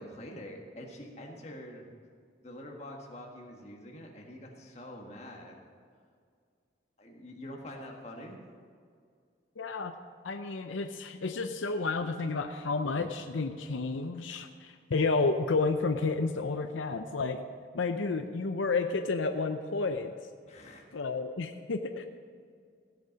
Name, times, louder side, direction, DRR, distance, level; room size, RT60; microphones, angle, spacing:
voice 1, 0.0-1.8 2.4-5.6 7.0-8.4 20.5-20.9, left 1 dB, 35° left, 0 dB, 1.7 m, -45 dB
voice 2, 9.6-9.9 10.2-17.4 17.7-20.1 20.9-22.1, left 3 dB, 85° left, 7 dB, 0.6 m, -31 dB
16.0 x 8.2 x 5.2 m, 2.1 s
head